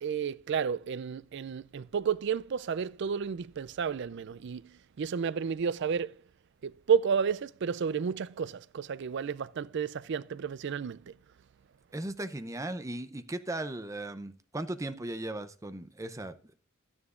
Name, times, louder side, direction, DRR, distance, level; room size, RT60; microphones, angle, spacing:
voice 1, 0.0-4.7 5.0-6.2 6.6-11.1, right 6 dB, 55° right, 0.4 m, -31 dB
voice 2, 11.9-16.5, right 1 dB, 15° right, 0.6 m, -37 dB
13.0 x 9.7 x 2.5 m
head